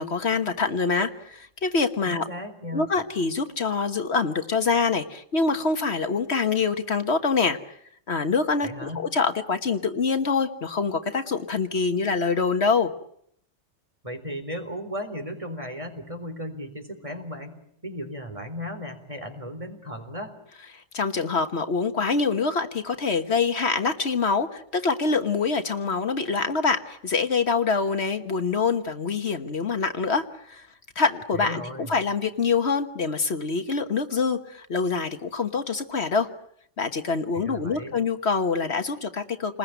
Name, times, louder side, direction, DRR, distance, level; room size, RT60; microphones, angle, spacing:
voice 1, 0.0-2.3 2.7-7.6 8.1-12.9 20.7-30.7 31.0-36.3 36.8-39.6, left 4 dB, 60° left, 8 dB, 1.6 m, -25 dB
voice 2, 2.1-2.9 8.6-9.0 14.0-17.6 17.8-20.3 31.3-31.9 37.3-37.9, equal, 25° right, 6 dB, 4.0 m, -35 dB
29.0 x 20.5 x 9.2 m, 0.70 s
omnidirectional pair, 1.2 m